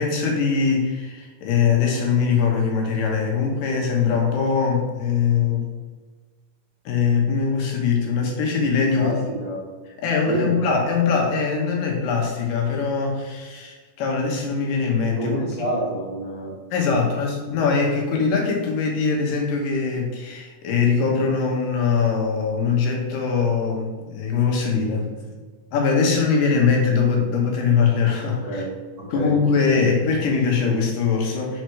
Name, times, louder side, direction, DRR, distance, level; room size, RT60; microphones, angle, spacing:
voice 1, 0.0-5.7 6.9-9.2 10.0-15.4 16.7-25.1 25.7-28.6 29.1-31.6, left 5 dB, 80° left, 0 dB, 2.9 m, -22 dB
voice 2, 8.9-9.6 10.2-10.6 15.2-16.5 16.8-17.0 28.5-28.7 29.0-29.3, right 2 dB, 70° right, -6 dB, 0.9 m, -28 dB
5.7 x 4.7 x 4.7 m, 1.4 s
omnidirectional pair, 3.9 m